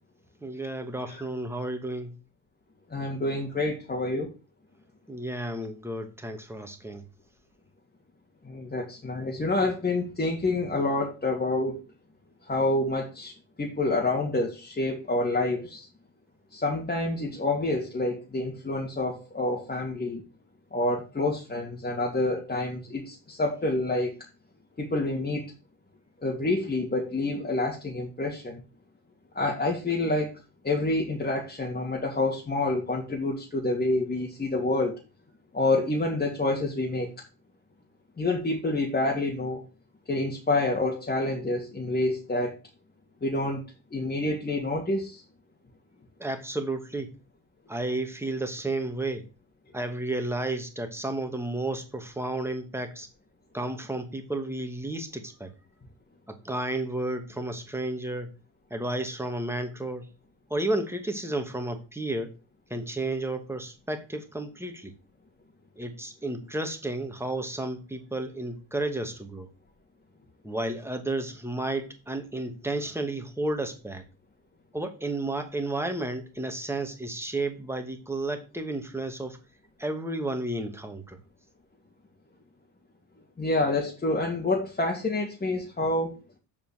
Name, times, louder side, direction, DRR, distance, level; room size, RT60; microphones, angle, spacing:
voice 1, 0.4-2.2 5.1-7.1 46.2-47.1 47.7-49.2 49.7-53.1 53.5-55.5 56.3-58.3 58.7-60.1 60.5-62.3 62.7-64.9 65.8-69.5 70.4-74.0 74.7-79.4 79.8-81.2, right 2 dB, 5° right, 4 dB, 2.4 m, -32 dB
voice 2, 2.9-4.3 8.4-11.8 12.5-15.9 16.5-20.2 20.7-24.1 24.8-25.5 26.2-28.6 29.3-30.3 30.6-34.9 35.5-37.1 38.2-39.6 40.1-42.6 43.2-43.6 43.9-45.2 83.4-86.1, left 2 dB, 25° left, -1 dB, 2.8 m, -28 dB
7.4 x 5.1 x 6.7 m, 0.30 s
supercardioid pair, 70°, 38 cm